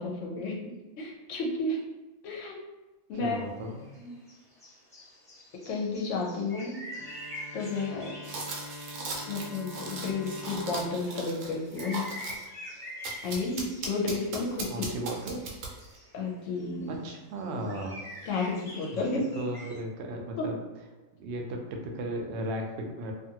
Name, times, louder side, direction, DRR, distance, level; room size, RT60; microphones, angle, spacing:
voice 1, 0.0-1.8 2.2-2.6 3.1-3.4 5.7-6.8 7.5-8.1 9.3-12.1 13.2-14.9 16.1-16.9 18.3-19.3 20.4-20.5, left 3 dB, 65° left, -1 dB, 0.9 m, -32 dB
voice 2, 3.1-3.8 14.6-15.6 16.9-18.0 18.9-20.6 21.2-23.1, right 1 dB, 65° right, 1 dB, 0.7 m, -36 dB
sound 1, 3.3-3.4 3.7-9.4 9.7-16.3 16.6-19.8, equal, 5° left, 0.8 m, -46 dB
Bowed string instrument, 6.9-12.6, left 2 dB, 35° left, 0.7 m, -46 dB
sound 2, 8.2-12.5 13.0-16.0, right 3 dB, 80° right, 1.0 m, -38 dB
2.5 x 2.5 x 2.7 m, 1.1 s
omnidirectional pair, 1.5 m